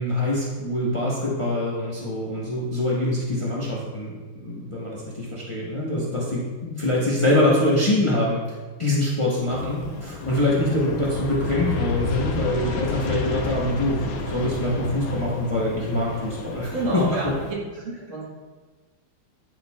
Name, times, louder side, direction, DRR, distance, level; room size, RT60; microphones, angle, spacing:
voice 1, 0.0-8.4 8.8-17.0, left 1 dB, 55° left, -5 dB, 0.3 m, -24 dB
Aircraft, 9.5-17.5, left 4 dB, 80° left, 1.5 m, -31 dB
voice 2, 16.7-17.6 17.8-18.2, right 2 dB, 75° right, -5 dB, 2.3 m, -28 dB
10.0 x 4.4 x 2.3 m, 1.3 s
omnidirectional pair, 2.3 m